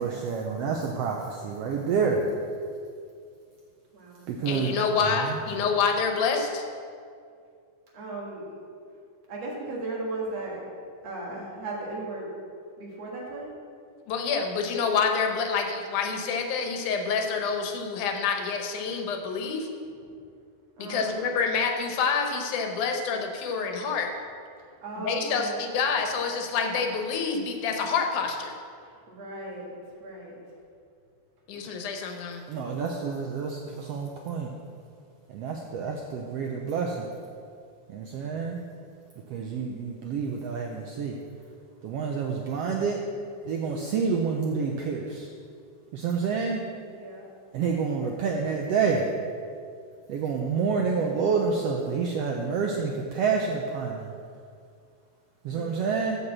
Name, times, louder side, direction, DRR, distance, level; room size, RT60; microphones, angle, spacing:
voice 1, 0.0-2.3 4.3-4.7 32.5-34.5 35.3-37.1 37.9-38.6 39.3-41.2 41.8-43.0 43.4-45.3 45.9-46.6 47.5-49.0 50.1-54.1 55.4-56.2, right 5 dB, 80° right, 1 dB, 1.4 m, -28 dB
voice 2, 3.9-4.4 7.9-8.6 9.3-10.7 11.0-12.3 12.8-13.5 19.9-20.2 20.8-21.3 24.8-25.7 28.8-30.4 46.9-47.3 55.5-55.8, right 2 dB, 60° right, -3 dB, 2.7 m, -37 dB
voice 3, 4.5-6.7 14.1-19.7 20.8-24.1 25.0-28.5 31.5-32.4, left 5 dB, 85° left, 3 dB, 2.4 m, -27 dB
7.1 x 6.6 x 7.3 m, 2.3 s
omnidirectional pair, 3.4 m